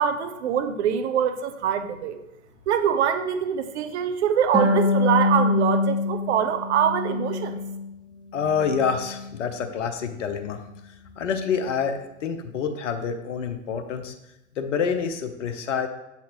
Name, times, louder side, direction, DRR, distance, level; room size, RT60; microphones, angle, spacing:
voice 1, 0.0-2.2 2.7-7.6, right 8 dB, 55° right, 9 dB, 0.9 m, -24 dB
Harp, 4.5-7.9 8.3-9.3, left 3 dB, 10° right, 0.8 m, -25 dB
voice 2, 8.3-10.6 11.2-14.1 14.6-15.9, left 6 dB, 65° left, 6 dB, 0.8 m, -27 dB
7.4 x 5.8 x 2.9 m, 0.91 s
figure-of-eight pair, 105°, 40 cm